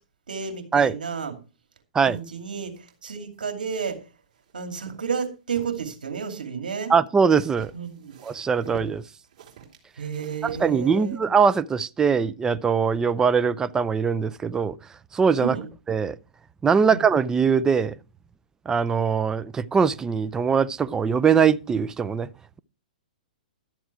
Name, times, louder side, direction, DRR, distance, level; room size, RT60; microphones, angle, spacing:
voice 1, 0.3-1.3 2.0-4.0 4.5-6.9 7.7-8.1 10.0-11.2 15.4-15.7 16.9-17.0, right 6 dB, 80° right, 2.6 m, -31 dB
sound 1, 2.1-4.5 4.8-5.8 7.2-11.3, right 7 dB, 55° right, 3.5 m, -46 dB
voice 2, 6.9-7.7 8.2-9.0 10.4-14.8 15.1-15.6 15.9-16.2 16.6-18.0 18.7-22.3, right 6 dB, 15° right, 0.5 m, -21 dB
12.5 x 7.4 x 4.6 m
hypercardioid pair, 125°, 5 cm